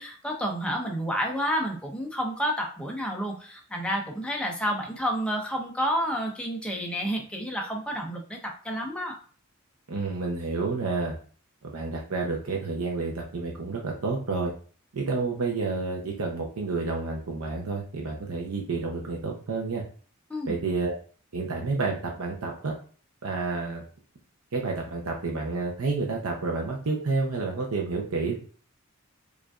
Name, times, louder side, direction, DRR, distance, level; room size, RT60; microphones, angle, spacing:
voice 1, 0.0-8.4 8.6-9.2 20.3-20.6, equal, 5° left, 0 dB, 0.5 m, -30 dB
voice 2, 9.9-11.1 11.6-14.5 14.9-19.8 20.5-20.9 21.3-22.7 23.2-23.8 24.5-28.4, right 3 dB, 80° right, 0 dB, 0.6 m, -29 dB
4.9 x 2.5 x 2.3 m, 0.43 s
head